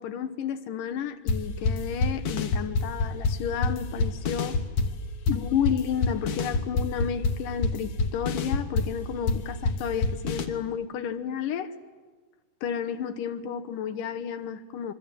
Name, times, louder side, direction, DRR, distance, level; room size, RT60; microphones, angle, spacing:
voice 1, 0.0-4.6 5.3-11.7 12.6-14.9, left 8 dB, 80° left, 8 dB, 2.7 m, -31 dB
sound 1, 1.3-10.5, left 3 dB, 60° left, 2.4 m, -27 dB
26.5 x 23.5 x 9.1 m, 1.4 s
omnidirectional pair, 3.9 m